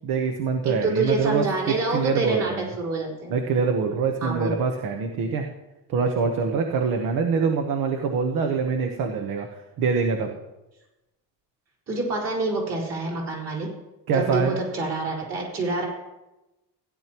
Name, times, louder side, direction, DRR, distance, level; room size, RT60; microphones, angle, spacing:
voice 1, 0.0-2.7 3.3-5.5 5.9-9.5 9.8-10.3 14.1-14.6, right 5 dB, 55° right, 4 dB, 1.1 m, -24 dB
voice 2, 0.6-3.3 4.2-4.6 11.9-13.7 14.1-15.9, right 3 dB, 40° right, -4 dB, 4.4 m, -27 dB
16.0 x 11.0 x 3.0 m, 1.0 s
cardioid pair, 175°, 40 cm